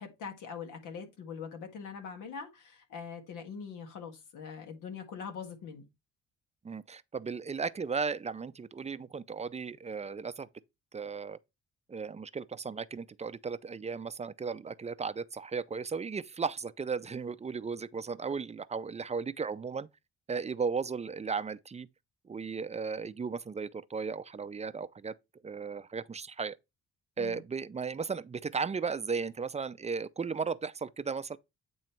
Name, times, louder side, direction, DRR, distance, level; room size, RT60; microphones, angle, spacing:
voice 1, 0.0-5.9 27.2-27.4, left 6 dB, 85° left, 1.8 m, -43 dB
voice 2, 6.6-10.5 10.9-11.4 11.9-19.9 20.3-21.9 22.3-25.2 25.4-26.6 27.2-31.4, right 5 dB, 20° right, 0.5 m, -35 dB
9.0 x 3.1 x 4.4 m
cardioid pair, 90°, 30 cm